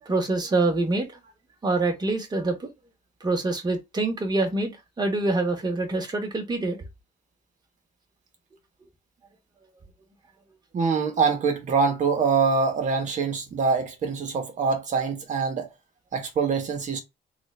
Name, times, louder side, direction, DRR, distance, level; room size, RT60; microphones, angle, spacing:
voice 1, 0.0-1.2 1.6-2.7 3.2-4.7 5.0-6.8, right 2 dB, 25° right, 1.4 m, -25 dB
voice 2, 10.7-15.7 16.1-17.0, right 5 dB, 45° right, 1.3 m, -24 dB
3.7 x 2.6 x 3.3 m
cardioid pair, 110°, 17 cm